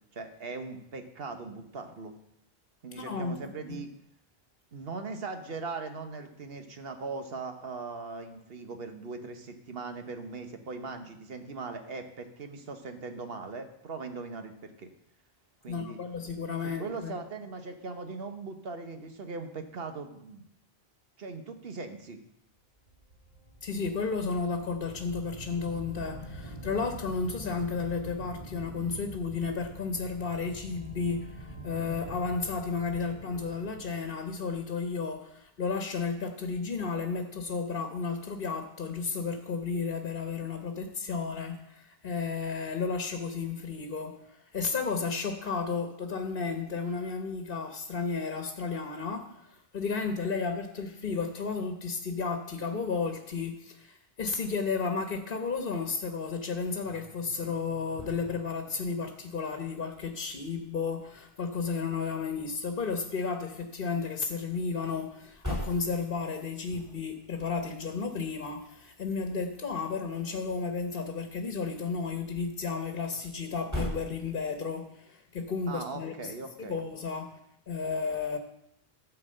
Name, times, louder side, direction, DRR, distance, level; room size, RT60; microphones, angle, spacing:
voice 1, 0.1-2.1 2.8-3.9 4.7-14.9 15.6-16.0 16.6-20.4 21.2-22.2 75.7-76.8, right 4 dB, 70° right, 7 dB, 1.4 m, -40 dB
voice 2, 2.9-3.8 15.7-17.1 23.6-76.3 76.6-77.3 77.7-78.4, left 5 dB, 60° left, 6 dB, 1.2 m, -33 dB
sound 1, 22.9-34.9, right 1 dB, 30° right, 2.4 m, -45 dB
sound 2, 56.7-74.8, equal, 15° right, 5.4 m, -45 dB
13.5 x 4.7 x 7.7 m, 0.75 s
omnidirectional pair, 1.0 m